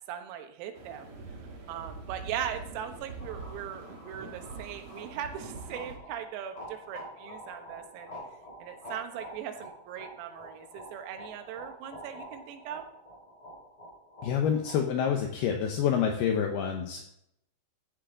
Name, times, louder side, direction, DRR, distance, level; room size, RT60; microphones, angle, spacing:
voice 1, 0.1-8.1 8.6-12.8, right 9 dB, 90° right, 6 dB, 4.0 m, -39 dB
sound 1, 0.7-6.0, right 3 dB, 45° right, 2.4 m, -44 dB
sound 2, 3.2-14.8, equal, 35° left, 6.0 m, -47 dB
voice 2, 14.2-17.1, left 8 dB, 75° left, 3 dB, 2.4 m, -27 dB
14.5 x 11.5 x 3.9 m, 0.75 s
omnidirectional pair, 6.0 m